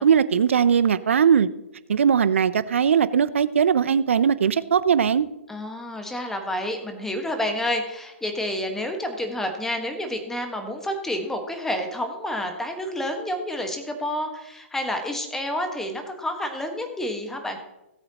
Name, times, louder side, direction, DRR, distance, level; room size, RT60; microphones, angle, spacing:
voice 1, 0.0-1.5 1.9-5.2, right 7 dB, 70° right, 16 dB, 0.6 m, -19 dB
voice 2, 5.5-17.6, left 1 dB, 5° left, 5 dB, 1.4 m, -29 dB
17.5 x 7.9 x 3.0 m, 0.98 s
figure-of-eight pair, 125°, 7 cm